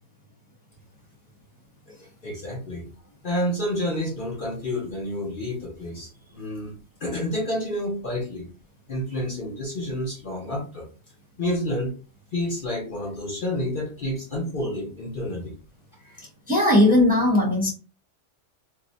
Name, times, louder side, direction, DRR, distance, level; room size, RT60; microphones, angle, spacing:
voice 1, 2.2-2.9 3.2-8.5 8.9-10.8 11.4-11.9 12.3-15.5 16.0-16.2, left 1 dB, 50° left, -2 dB, 0.8 m, -29 dB
voice 2, 16.5-17.7, left 1 dB, 10° right, -3 dB, 0.8 m, -18 dB
2.6 x 2.1 x 3.8 m, 0.36 s
omnidirectional pair, 1.3 m